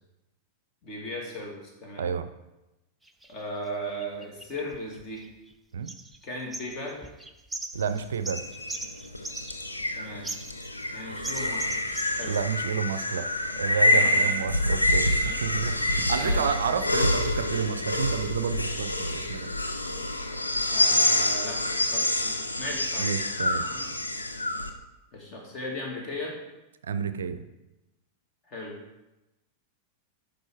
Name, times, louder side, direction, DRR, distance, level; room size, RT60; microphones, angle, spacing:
voice 1, 0.8-2.1 3.3-5.3 6.2-7.1 10.0-10.3 10.9-11.7 12.2-12.4 13.9-14.4 15.3-15.9 16.2-16.9 20.7-23.4 23.6-23.9 25.1-26.4 28.5-28.7, left 1 dB, 35° left, -1 dB, 2.3 m, -37 dB
voice 2, 2.0-2.3 5.7-5.9 7.7-8.4 12.2-13.3 13.6-19.5 23.0-23.7 26.8-27.4, right 7 dB, 65° right, 12 dB, 0.4 m, -30 dB
sound 1, 3.1-3.3 4.0-5.5 5.9-6.2 6.5-9.9 10.2-10.9 11.2-12.4, right 2 dB, 5° right, 0.6 m, -39 dB
sound 2, 7.7-24.7, left 1 dB, 85° left, 0.7 m, -27 dB
10.5 x 3.9 x 4.7 m, 0.98 s
figure-of-eight pair, 90°, 0 cm